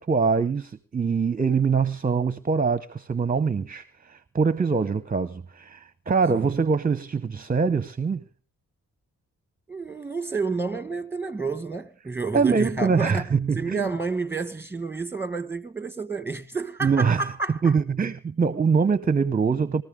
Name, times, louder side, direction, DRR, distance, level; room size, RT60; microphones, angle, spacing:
voice 1, 0.0-8.2 12.3-13.9 16.8-17.3 17.6-19.8, right 5 dB, 25° right, 0.7 m, -23 dB
voice 2, 9.7-13.2 13.5-17.8, right 4 dB, 5° right, 1.5 m, -30 dB
20.5 x 14.5 x 3.6 m
cardioid pair, 50°, 35 cm